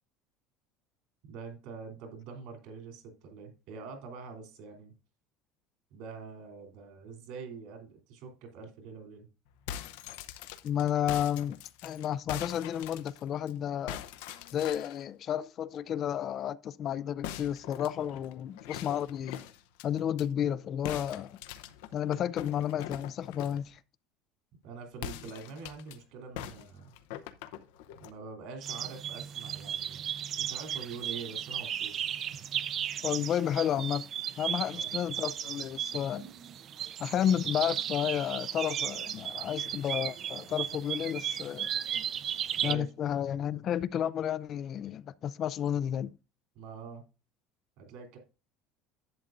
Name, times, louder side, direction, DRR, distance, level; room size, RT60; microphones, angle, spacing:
voice 1, 1.3-4.9 5.9-9.3 24.6-26.9 28.0-30.1 30.4-32.0 34.7-34.9 42.5-42.9 46.5-47.0 47.8-48.2, right 5 dB, 65° right, 3.1 m, -45 dB
sound 1, 9.5-13.5 13.9-15.0 17.2-20.3 20.9-23.7 24.9-26.0 26.4-28.2, left 11 dB, 85° left, 0.7 m, -43 dB
voice 2, 10.6-14.0 14.5-19.4 19.8-21.4 21.9-23.8 33.0-34.1 34.4-36.3 37.0-41.7 42.6-46.1, left 10 dB, 40° left, 0.3 m, -32 dB
sound 2, 28.6-42.8, right 9 dB, 35° right, 0.5 m, -35 dB
11.0 x 8.2 x 2.6 m
cardioid pair, 150°, 0 cm